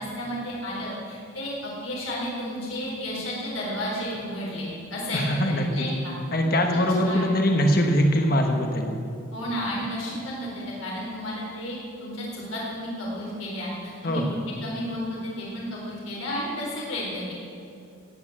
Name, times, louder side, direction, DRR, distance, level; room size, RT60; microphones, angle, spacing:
voice 1, 0.0-6.1 7.0-7.3 9.3-14.2 14.6-17.3, equal, 85° left, -5 dB, 4.3 m, -32 dB
voice 2, 5.1-5.9 6.3-9.0 14.0-14.4, equal, 45° left, 3 dB, 1.3 m, -22 dB
17.5 x 9.0 x 7.4 m, 2.6 s
head